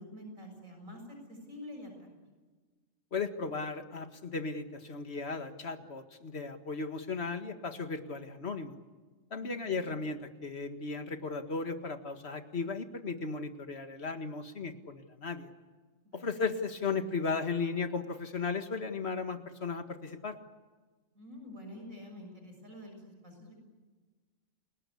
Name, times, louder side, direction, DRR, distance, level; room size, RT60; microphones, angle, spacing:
voice 1, 0.0-2.1 9.4-9.8 16.1-16.3 21.2-23.5, left 1 dB, 85° right, 3 dB, 7.2 m, -47 dB
voice 2, 3.1-8.7 9.3-15.5 16.1-20.4, left 4 dB, 50° left, 7 dB, 2.0 m, -36 dB
30.0 x 21.0 x 8.5 m, 1.4 s
omnidirectional pair, 1.4 m